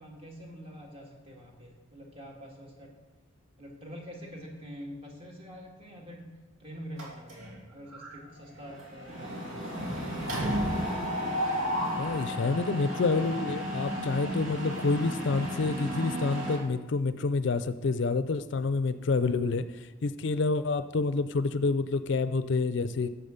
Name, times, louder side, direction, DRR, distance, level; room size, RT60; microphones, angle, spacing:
voice 1, 0.0-2.9 3.6-10.5 12.1-12.5, equal, 30° right, -1 dB, 2.0 m, -46 dB
Mechanisms, 7.0-7.6 7.9-8.1 8.4-16.6, equal, 75° right, 2.6 m, -33 dB
voice 2, 12.0-23.1, left 3 dB, 60° left, 12 dB, 0.4 m, -28 dB
12.0 x 7.2 x 5.2 m, 1.2 s
head